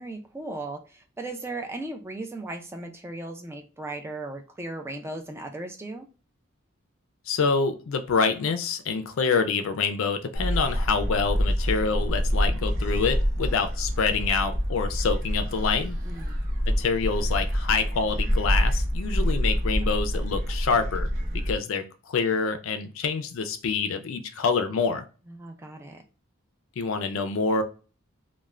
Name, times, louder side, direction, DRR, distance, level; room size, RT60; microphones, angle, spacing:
voice 1, 0.0-6.1 16.0-16.4 25.3-26.0, right 2 dB, 10° right, 3 dB, 0.3 m, -37 dB
voice 2, 7.3-16.0 16.7-21.1 21.5-25.1 26.8-27.6, left 5 dB, 70° left, 9 dB, 0.4 m, -26 dB
Gull seagull, 10.3-21.5, equal, 45° right, 0.9 m, -26 dB
2.4 x 2.1 x 3.1 m, 0.36 s
head